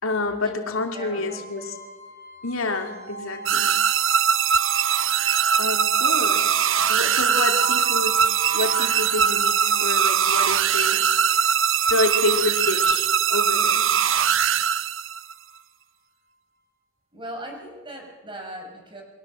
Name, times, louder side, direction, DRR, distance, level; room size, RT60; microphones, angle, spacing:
voice 1, 0.0-1.7 2.4-3.8 5.6-6.5 6.9-11.6 11.9-13.9, left 2 dB, 85° left, 4 dB, 2.9 m, -28 dB
sound 1, 0.7-15.6, right 4 dB, 50° right, 4.6 m, -38 dB
voice 2, 0.9-1.4 2.6-2.7 17.1-19.0, right 1 dB, 25° right, 2 dB, 6.3 m, -38 dB
sound 2, 3.5-15.3, right 8 dB, 70° right, 0.9 m, -21 dB
29.0 x 22.5 x 7.6 m, 1.3 s
head